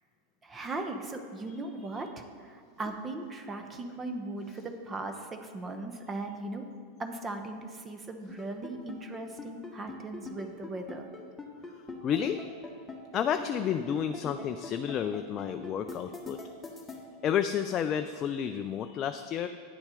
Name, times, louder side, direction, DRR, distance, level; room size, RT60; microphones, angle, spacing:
voice 1, 0.4-6.7 7.0-11.1, right 2 dB, 20° right, 6 dB, 0.9 m, -38 dB
sound 1, 8.3-17.0, left 4 dB, 10° left, 1.4 m, -42 dB
voice 2, 11.7-12.5 13.1-16.4 16.9-19.5, left 8 dB, 35° left, 8 dB, 0.4 m, -31 dB
9.1 x 7.1 x 5.0 m, 2.1 s
figure-of-eight pair, 90°, 0 cm